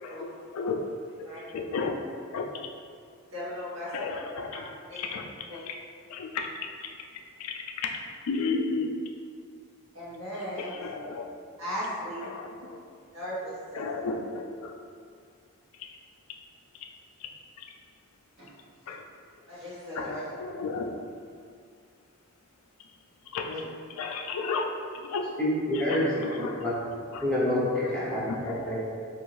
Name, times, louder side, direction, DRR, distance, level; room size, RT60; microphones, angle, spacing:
voice 1, 0.0-0.8 1.2-1.3 1.5-2.0 2.3-2.5 3.9-4.7 5.0-5.2 5.5-5.8 6.1-6.5 6.8-7.1 7.4-8.0 8.3-8.9 10.6-11.4 12.2-12.8 13.7-14.8 15.7-16.0 17.2-17.3 17.6-17.7 18.9-19.0 19.9-21.0 23.3-24.7 24.9-25.3 25.7-26.6 27.1-27.2 27.7-28.7, left 4 dB, 75° left, 3 dB, 0.3 m, -34 dB
voice 2, 3.3-3.9 4.5-4.6 4.9-5.1 5.5-5.6 9.9-10.7 11.6-12.3 13.1-13.8 18.4-18.5 19.5-20.2, equal, 55° right, -10 dB, 1.1 m, -37 dB
voice 3, 25.4-26.3 26.6-26.7 27.2-28.9, left 1 dB, 5° left, -8 dB, 0.5 m, -27 dB
2.6 x 2.4 x 3.1 m, 2.2 s
head